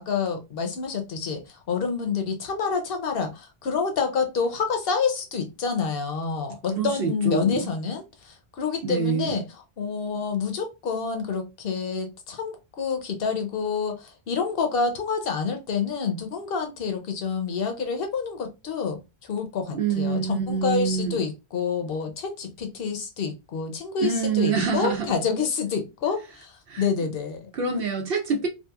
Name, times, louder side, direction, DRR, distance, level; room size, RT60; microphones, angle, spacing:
voice 1, 0.0-9.4 9.8-27.5, left 5 dB, 65° left, 0.9 m, -28 dB
voice 2, 6.7-7.7 8.8-9.4 19.7-21.2 24.0-25.1 26.7-26.8 27.5-28.5, right 5 dB, 65° right, 0.8 m, -26 dB
2.8 x 2.4 x 2.3 m
omnidirectional pair, 1.1 m